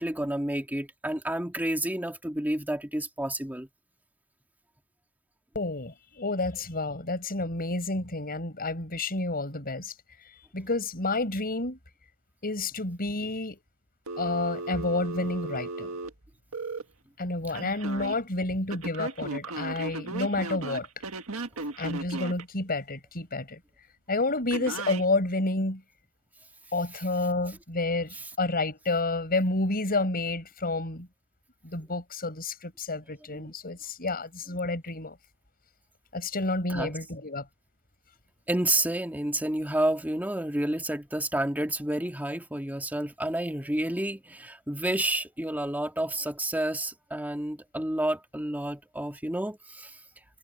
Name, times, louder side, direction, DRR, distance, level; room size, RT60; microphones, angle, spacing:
voice 1, 0.0-3.7 17.5-17.6 26.9-27.1 27.5-27.6 28.1-28.3 33.3-33.5 34.5-34.6 36.7-37.0 38.5-50.0, right 1 dB, 10° right, 2.0 m, -30 dB
voice 2, 5.5-9.9 10.5-11.8 12.4-13.6 14.2-15.9 17.2-20.9 21.8-23.6 24.1-25.8 26.7-31.1 31.6-35.2 36.1-37.4, left 2 dB, 45° left, 6.3 m, -30 dB
Telephone, 14.1-16.8 17.5-18.1 18.7-22.4 24.5-25.0, right 2 dB, 70° right, 1.7 m, -36 dB
head